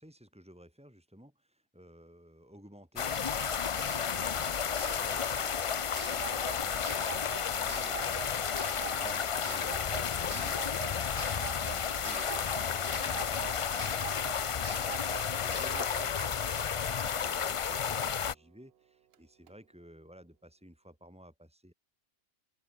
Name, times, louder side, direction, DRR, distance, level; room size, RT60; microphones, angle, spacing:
voice 1, 0.0-21.7, equal, 5° right, 5.8 m, -55 dB
sound 1, 3.0-18.3, left 7 dB, 50° left, 0.4 m, -32 dB
Clock, 3.4-18.0 19.1-19.2 19.5-19.6, right 9 dB, 60° right, 1.0 m, -46 dB
open air
omnidirectional pair, 1.2 m